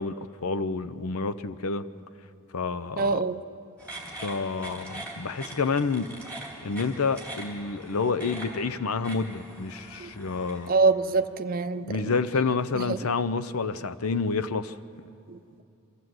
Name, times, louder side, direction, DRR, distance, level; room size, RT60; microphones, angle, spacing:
voice 1, 0.0-1.8 2.5-3.3 4.2-6.1 6.6-10.7 11.8-14.8, left 4 dB, 75° left, 13 dB, 0.7 m, -29 dB
voice 2, 3.0-3.4 10.0-10.1 10.7-11.9 12.7-13.1 15.3-15.4, right 4 dB, 40° right, 8 dB, 0.5 m, -25 dB
sound 1, 3.8-10.7, right 1 dB, 5° left, 3.0 m, -42 dB
24.5 x 14.5 x 7.8 m, 2.6 s
head